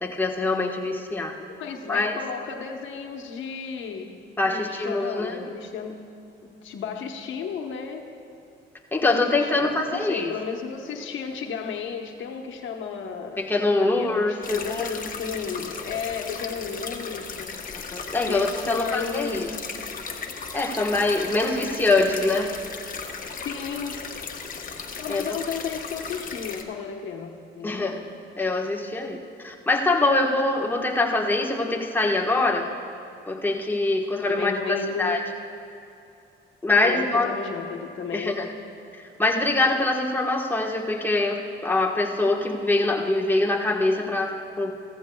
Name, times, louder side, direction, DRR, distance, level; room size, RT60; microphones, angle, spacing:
voice 1, 0.0-1.3 1.9-2.2 4.4-5.4 8.9-10.3 13.4-14.9 17.9-19.5 20.5-22.5 25.1-25.2 27.6-28.0 28.4-32.7 33.3-35.2 36.6-37.3 38.1-38.5 39.0-44.7, left 2 dB, 10° left, -1 dB, 1.2 m, -24 dB
voice 2, 1.6-4.1 4.4-6.0 6.4-8.0 9.0-13.4 13.8-17.5 18.3-19.7 23.4-24.1 25.0-28.0 34.3-35.2 36.8-38.5, left 6 dB, 75° left, 3 dB, 1.1 m, -33 dB
sound 1, 14.4-26.6, left 5 dB, 45° left, 1.0 m, -36 dB
15.5 x 14.5 x 2.3 m, 2.6 s
cardioid pair, 90°, 20 cm